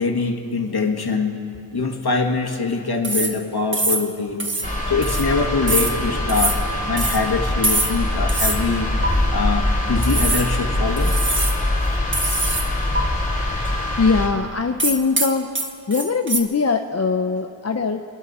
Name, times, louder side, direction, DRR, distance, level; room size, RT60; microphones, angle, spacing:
voice 1, 0.0-1.4 1.7-4.5 4.9-6.6 6.9-11.1, left 4 dB, 55° left, 2 dB, 1.7 m, -23 dB
sound 1, 3.0-3.4 3.7-4.1 4.4-4.7 5.0-5.3 5.7-6.0 6.3-6.6 7.0-7.2 7.6-8.0 8.3-8.6 9.0-9.1 10.0-10.5 11.0-11.6 12.1-12.7 12.9-13.0 14.8-16.4, right 2 dB, 25° right, 1.2 m, -23 dB
sound 2, 4.6-14.3, left 1 dB, 20° left, 3.2 m, -23 dB
voice 2, 14.0-15.5 15.9-18.0, left 4 dB, 35° left, 7 dB, 0.6 m, -21 dB
27.5 x 11.0 x 4.2 m, 2.6 s
wide cardioid pair, 75°, 45 cm